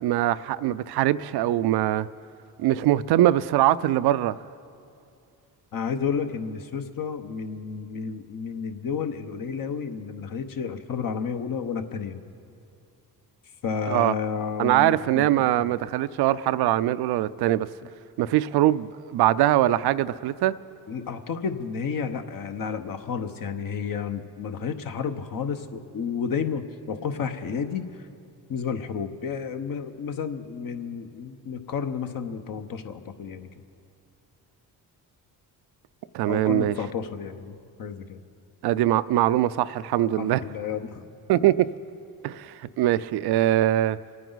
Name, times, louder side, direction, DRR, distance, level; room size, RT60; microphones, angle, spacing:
voice 1, 0.0-2.1 2.6-4.4 13.9-14.1 14.6-17.7 18.2-20.5 36.1-36.7 38.6-40.4 41.3-41.7 42.2-44.0, right 13 dB, 70° right, 0.5 m, -22 dB
voice 2, 5.7-12.2 13.6-15.2 15.5-15.7 20.9-28.1 28.5-33.5 36.3-38.2 40.2-41.0 41.3-41.4, left 6 dB, 55° left, 1.0 m, -31 dB
27.5 x 9.4 x 4.0 m
supercardioid pair, 70°, 41 cm